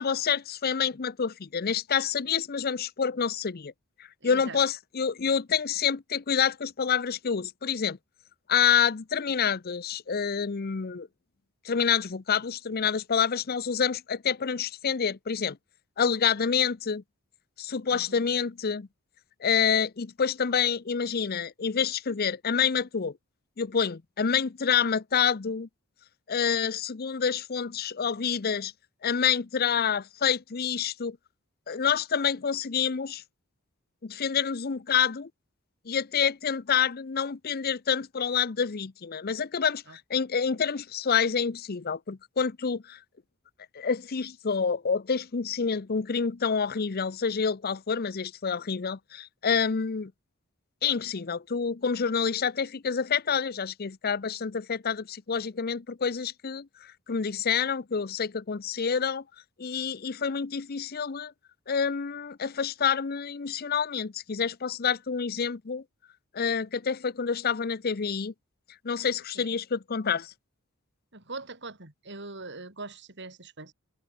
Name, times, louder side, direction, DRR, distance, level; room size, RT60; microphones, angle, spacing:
voice 1, 0.0-3.7 4.2-8.0 8.5-11.1 11.6-15.6 16.0-17.0 17.6-18.9 19.4-23.1 23.6-25.7 26.3-28.7 29.0-31.2 31.7-33.2 34.0-35.3 35.9-43.0 43.7-50.1 50.8-59.2 59.6-61.3 61.7-65.8 66.3-68.3 68.8-70.3, left 6 dB, 45° left, 0.6 m, -28 dB
voice 2, 4.2-4.6 17.9-18.2 39.9-40.0 69.4-69.5 71.1-73.7, right 3 dB, 55° right, 5.2 m, -42 dB
open air
head